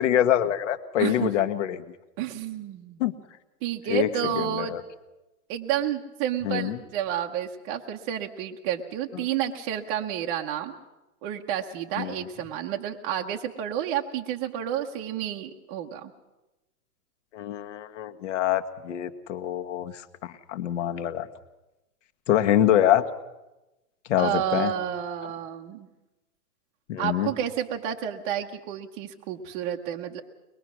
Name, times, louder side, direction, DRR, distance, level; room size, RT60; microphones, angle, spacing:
voice 1, 0.0-1.8 3.0-3.1 3.9-4.8 6.4-6.8 9.1-9.2 12.0-12.1 17.3-21.3 22.3-23.0 24.1-24.7 26.9-27.3, left 11 dB, 50° left, 9 dB, 1.5 m, -25 dB
voice 2, 1.0-1.3 2.2-3.0 3.6-4.8 5.5-10.8 11.2-16.1 24.2-25.9 27.0-30.2, right 10 dB, 20° right, 1 dB, 0.8 m, -30 dB
22.5 x 21.0 x 6.1 m, 1.0 s
hypercardioid pair, 150°, 45 cm